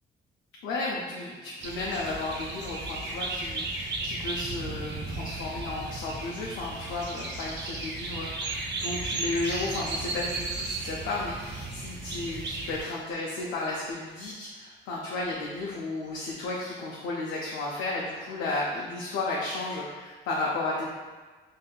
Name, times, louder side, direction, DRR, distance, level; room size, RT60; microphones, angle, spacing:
voice 1, 0.6-20.9, left 2 dB, 85° left, -4 dB, 0.5 m, -33 dB
sound 1, 1.6-12.8, right 3 dB, 60° right, 0.5 m, -35 dB
3.5 x 2.6 x 2.3 m, 1.4 s
cardioid pair, 90°, 20 cm